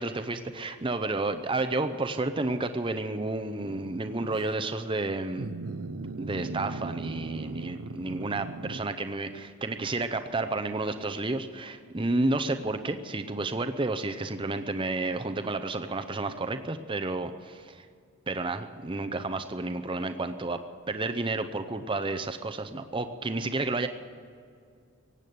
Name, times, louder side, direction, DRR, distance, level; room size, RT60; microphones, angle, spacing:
voice 1, 0.0-5.5 6.2-17.9 18.3-20.6 20.9-23.9, right 2 dB, 25° right, 8 dB, 0.7 m, -31 dB
sound 1, 3.6-4.5 5.4-8.9, right 3 dB, 75° right, 0.7 m, -38 dB
17.5 x 8.4 x 9.3 m, 2.2 s
head